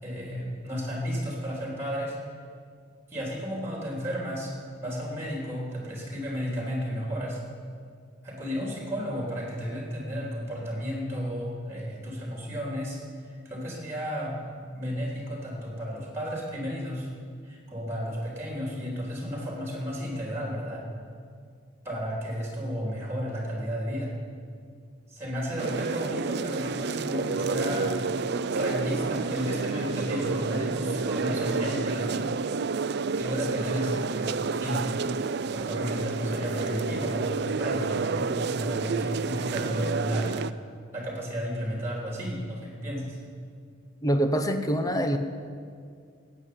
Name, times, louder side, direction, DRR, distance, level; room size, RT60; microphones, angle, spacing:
voice 1, 0.0-2.1 3.1-4.5 4.8-7.4 8.2-13.0 13.2-14.3 14.7-17.1 17.4-20.8 21.8-24.1 25.1-27.9 28.5-32.3 33.2-34.9 35.5-40.4 40.9-43.2, equal, 15° right, -2 dB, 3.4 m, -33 dB
sound 1, 25.6-40.5, right 4 dB, 55° right, 0.5 m, -30 dB
voice 2, 44.0-45.2, equal, 20° left, 7 dB, 0.9 m, -25 dB
14.5 x 8.4 x 9.5 m, 2.2 s
head